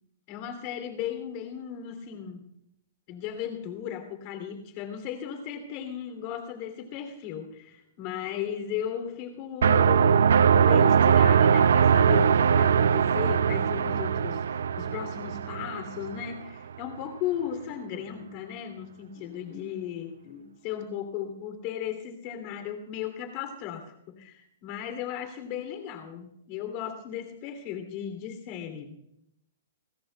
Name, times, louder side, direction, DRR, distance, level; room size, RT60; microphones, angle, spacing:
voice 1, 0.3-2.5 3.1-29.0, left 9 dB, 35° left, 7 dB, 2.9 m, -36 dB
sound 1, 9.6-16.3, right 7 dB, 85° right, 0.4 m, -21 dB
29.5 x 14.0 x 2.3 m, 0.77 s
hypercardioid pair, 160°, 0 cm